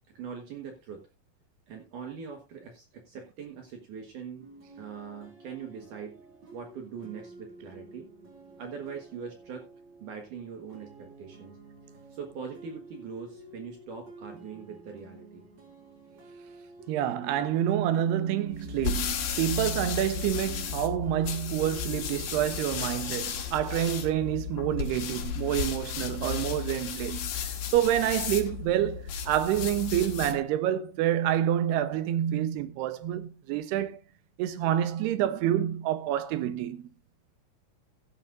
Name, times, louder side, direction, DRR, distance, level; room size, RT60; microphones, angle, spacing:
voice 1, 0.2-1.0 1.7-4.5 4.8-6.1 6.5-8.1 8.6-9.7 10.0-11.5 12.1-15.4, right 6 dB, 60° right, 2.6 m, -42 dB
sound 1, 4.4-24.2, right 2 dB, 45° right, 5.3 m, -50 dB
voice 2, 16.9-27.4 27.7-34.0 34.4-36.9, right 11 dB, 85° right, 2.9 m, -28 dB
sound 2, 18.5-30.4, left 8 dB, 80° left, 3.5 m, -34 dB
16.0 x 9.9 x 2.5 m
omnidirectional pair, 4.6 m